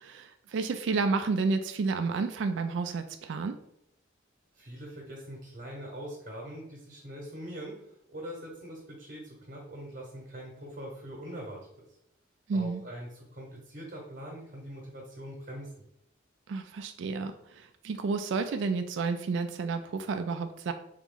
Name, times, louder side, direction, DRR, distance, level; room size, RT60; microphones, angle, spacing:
voice 1, 0.0-3.5 12.5-12.8 16.5-20.7, right 4 dB, 65° right, 7 dB, 0.3 m, -31 dB
voice 2, 4.5-11.6 12.5-15.7, equal, 45° right, -2 dB, 1.0 m, -42 dB
3.7 x 3.0 x 3.7 m, 0.77 s
head